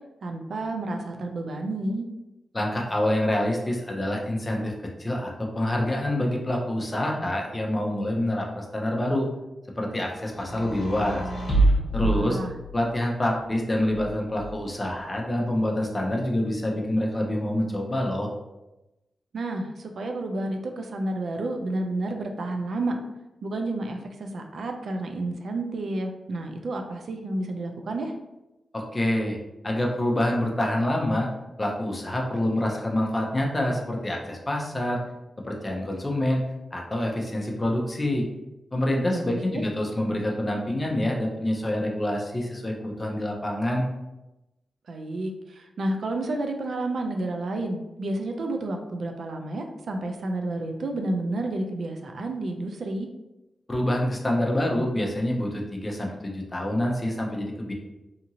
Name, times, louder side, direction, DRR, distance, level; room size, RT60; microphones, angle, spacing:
voice 1, 0.2-2.1 12.0-12.5 19.3-22.9 23.4-28.1 39.1-39.6 44.9-53.1, right 2 dB, 70° right, 4 dB, 0.4 m, -30 dB
voice 2, 2.5-4.7 5.0-9.3 9.8-11.3 11.9-12.4 12.7-18.3 28.7-29.4 29.6-31.3 31.6-35.0 35.4-36.4 36.7-38.3 38.7-43.9 53.7-57.7, left 1 dB, 20° left, 0 dB, 0.5 m, -26 dB
sound 1, 10.3-13.0 13.9-14.9, right 2 dB, 50° left, 0.8 m, -27 dB
2.8 x 2.5 x 2.7 m, 0.98 s
wide cardioid pair, 115°, 0 cm